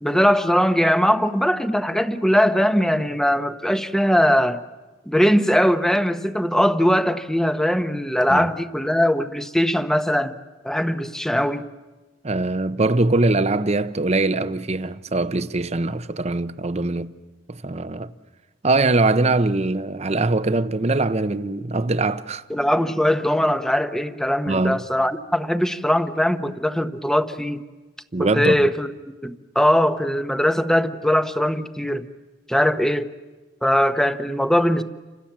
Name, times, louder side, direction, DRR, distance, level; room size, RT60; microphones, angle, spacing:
voice 1, 0.0-4.6 5.1-10.4 10.6-11.6 22.5-27.6 28.2-28.9 29.2-32.1 32.5-33.1 33.6-34.8, equal, 5° left, 1.0 m, -20 dB
voice 2, 12.2-17.1 17.5-18.1 18.6-22.4 24.5-24.8 28.1-28.7, right 2 dB, 35° right, 0.8 m, -22 dB
29.5 x 26.0 x 7.4 m
head